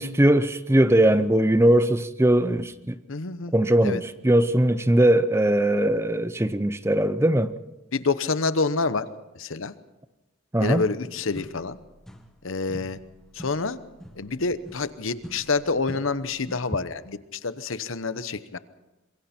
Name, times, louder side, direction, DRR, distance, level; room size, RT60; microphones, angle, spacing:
voice 1, 0.0-3.0 3.5-7.5 10.5-10.8, right 1 dB, 15° right, 0.6 m, -20 dB
voice 2, 3.1-3.5 3.8-4.0 7.9-9.1 9.3-9.7 10.6-11.8 12.4-13.0 13.3-13.8 14.1-18.6, left 4 dB, 75° left, 1.0 m, -27 dB
sound 1, 11.3-12.4 12.7-16.8, equal, 5° left, 1.7 m, -45 dB
26.5 x 22.0 x 4.4 m
head